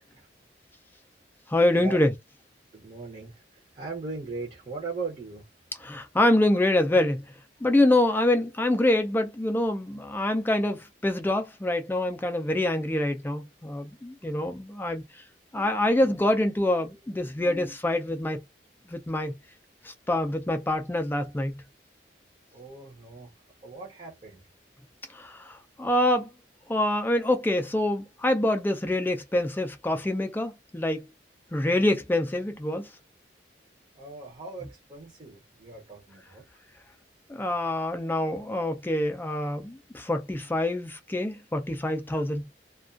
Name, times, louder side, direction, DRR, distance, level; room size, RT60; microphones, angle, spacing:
voice 1, 1.5-2.1 5.8-7.2 7.6-15.0 15.5-18.4 18.9-19.4 19.8-21.5 25.1-26.3 26.7-31.1 31.5-32.9 37.3-42.5, left 1 dB, 10° left, 0.3 m, -25 dB
voice 2, 2.7-5.5 22.5-23.3 23.6-24.4 34.0-36.4, right 4 dB, 35° right, 0.6 m, -39 dB
2.3 x 2.2 x 2.4 m
head